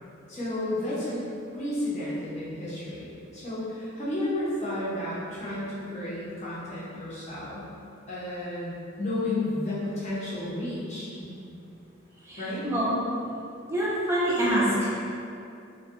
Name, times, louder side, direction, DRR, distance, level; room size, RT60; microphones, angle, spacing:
voice 1, 0.3-7.7 8.1-11.1 12.4-12.7, left 1 dB, 35° left, -9 dB, 0.6 m, -32 dB
voice 2, 12.2-13.0 13.7-14.9, right 1 dB, 15° right, -7 dB, 0.4 m, -26 dB
2.6 x 2.2 x 2.4 m, 2.6 s
head